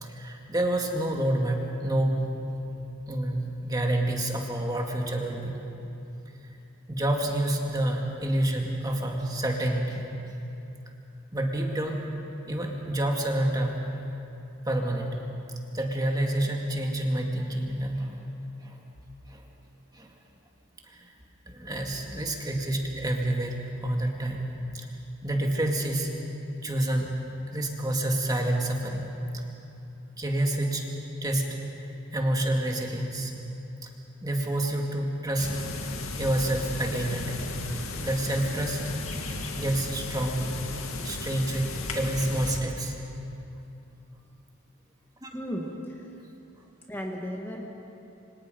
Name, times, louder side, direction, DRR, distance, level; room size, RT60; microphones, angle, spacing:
voice 1, 0.0-2.3 3.1-5.6 6.9-10.0 11.3-12.0 12.4-13.8 14.7-15.3 15.7-18.2 18.6-18.8 19.3-19.5 19.9-20.1 20.9-21.1 21.5-24.9 25.2-26.2 26.6-27.2 27.5-29.1 29.3-29.4 30.2-30.9 31.2-31.6 32.1-33.3 33.8-33.9 34.2-35.6 36.2-37.6 38.0-38.9 39.5-40.7 41.0-43.0 45.2-45.3, right 1 dB, 20° right, 1 dB, 2.1 m, -28 dB
sound 1, 35.4-42.6, left 2 dB, 85° left, 2.2 m, -35 dB
voice 2, 45.3-46.1 46.9-47.7, equal, 10° left, 0 dB, 1.6 m, -35 dB
28.0 x 25.0 x 5.2 m, 2.8 s
head